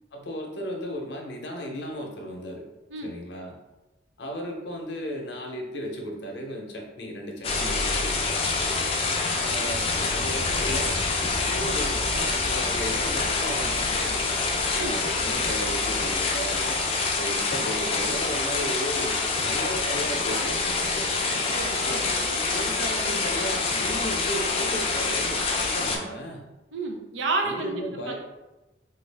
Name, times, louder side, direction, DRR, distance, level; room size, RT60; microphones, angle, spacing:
voice 1, 0.1-2.7 3.0-3.6 4.2-8.4 9.3-11.1 11.3-14.3 14.6-16.6 17.1-21.4 22.5-26.4 27.4-28.1, equal, 75° left, 1 dB, 0.6 m, -35 dB
sound 1, 7.4-26.0, left 3 dB, 30° left, 0.4 m, -26 dB
voice 2, 21.5-22.4 25.9-26.2 26.7-28.1, right 3 dB, 90° right, 3 dB, 0.5 m, -31 dB
3.2 x 2.3 x 3.3 m, 1.0 s
head